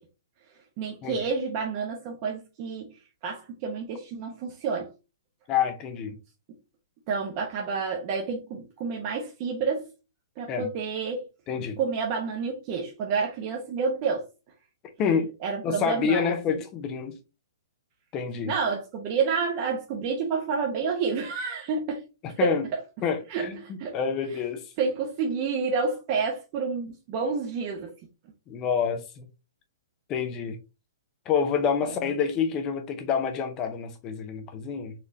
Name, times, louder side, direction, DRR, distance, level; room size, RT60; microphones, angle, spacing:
voice 1, 0.8-2.9 3.2-4.9 7.1-9.9 10.4-11.2 11.8-14.2 15.4-16.3 18.5-22.1 22.4-22.5 23.3-24.0 24.8-27.9 31.8-31.9, right 5 dB, 35° right, 0.8 m, -29 dB
voice 2, 5.5-6.2 10.5-10.7 11.5-11.8 15.0-15.3 15.6-17.2 18.1-18.5 22.4-22.6 23.0-24.6 28.5-29.2 30.1-30.6 31.3-34.9, left 6 dB, 25° left, 0.6 m, -27 dB
4.1 x 3.1 x 2.6 m
hypercardioid pair, 145°, 2 cm